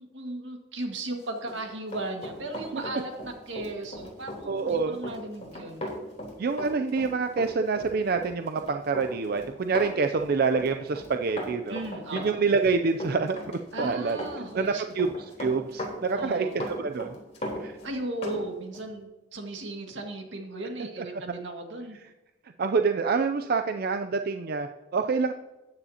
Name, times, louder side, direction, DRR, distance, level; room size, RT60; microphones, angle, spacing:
voice 1, 0.0-5.9 11.7-12.4 13.7-15.0 16.1-16.6 17.8-22.0, right 2 dB, 85° right, 3 dB, 1.9 m, -36 dB
Run, 1.4-18.4 18.7-18.9, equal, 40° left, 3.5 m, -38 dB
voice 2, 4.5-5.0 6.4-11.8 12.1-14.2 14.5-15.1 15.4-17.2 17.6-17.7 22.6-25.3, right 4 dB, 55° right, 7 dB, 0.4 m, -27 dB
13.5 x 9.7 x 2.8 m, 1.0 s
head